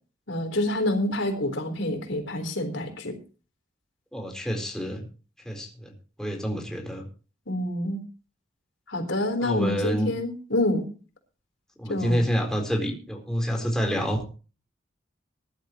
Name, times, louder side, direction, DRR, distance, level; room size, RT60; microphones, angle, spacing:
voice 1, 0.3-3.1 7.5-8.0 8.9-10.9 11.9-12.2, left 1 dB, 75° left, 6 dB, 4.1 m, -27 dB
voice 2, 4.1-5.1 5.4-5.9 6.2-7.1 9.4-10.1 11.8-14.2, equal, 5° left, 1 dB, 4.1 m, -28 dB
21.5 x 12.0 x 3.1 m, 0.36 s
head